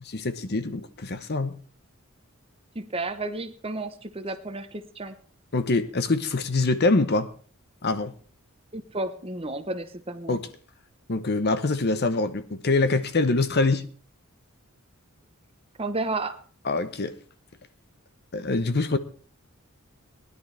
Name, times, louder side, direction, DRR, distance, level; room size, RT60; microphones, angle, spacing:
voice 1, 0.1-1.6 5.5-7.3 7.8-8.1 10.3-10.5 11.1-13.8 16.7-17.1 18.3-19.0, left 3 dB, 50° left, 0.9 m, -24 dB
voice 2, 2.7-5.2 8.7-10.4 15.8-16.4, right 2 dB, 25° right, 0.9 m, -32 dB
19.0 x 11.0 x 3.4 m
head